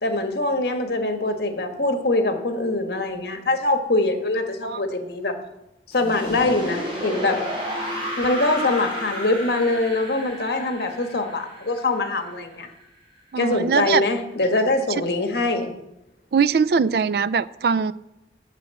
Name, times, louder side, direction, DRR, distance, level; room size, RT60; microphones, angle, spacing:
voice 1, 0.0-5.4 5.9-7.4 8.2-12.7 13.4-15.7, left 2 dB, 65° left, 7 dB, 1.4 m, -23 dB
sound 1, 5.9-12.8, equal, 30° right, 3.8 m, -32 dB
voice 2, 13.3-14.0 16.3-17.9, right 5 dB, 60° right, 18 dB, 0.4 m, -21 dB
8.3 x 7.8 x 7.5 m, 0.93 s
head